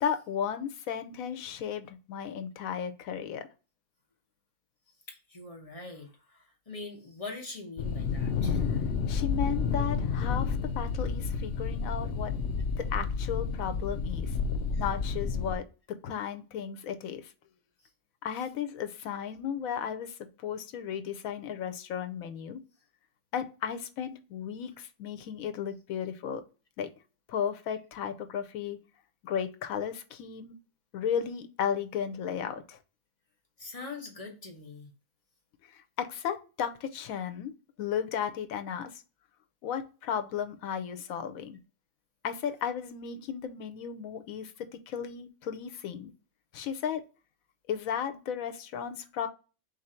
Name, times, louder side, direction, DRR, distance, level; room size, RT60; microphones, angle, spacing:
voice 1, 0.0-3.5 8.7-8.8 9.1-12.3 12.8-14.4 14.8-17.3 18.2-22.6 23.3-26.4 26.8-26.9 27.3-28.8 29.2-30.5 30.9-32.8 35.6-37.5 37.8-39.0 39.6-41.6 42.2-46.1 46.5-47.0 47.7-49.3, left 8 dB, 90° left, 1.0 m, -34 dB
voice 2, 5.1-8.8 14.7-14.8 33.6-34.9, left 3 dB, 30° left, 0.7 m, -43 dB
sound 1, 7.8-15.6, left 5 dB, 65° left, 0.7 m, -30 dB
3.9 x 2.6 x 4.2 m
omnidirectional pair, 1.4 m